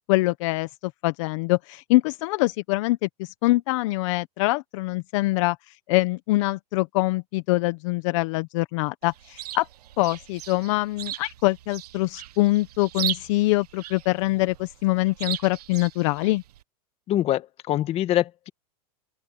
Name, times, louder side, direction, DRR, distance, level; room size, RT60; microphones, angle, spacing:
voice 1, 0.1-5.6 5.9-9.7 10.0-16.4, left 20 dB, 55° left, 1.1 m, -24 dB
Chirp tweet, 9.0-16.6, right 14 dB, 75° right, 1.1 m, -37 dB
voice 2, 17.1-18.5, left 13 dB, 30° left, 1.8 m, -24 dB
open air
supercardioid pair, 140°, 20 cm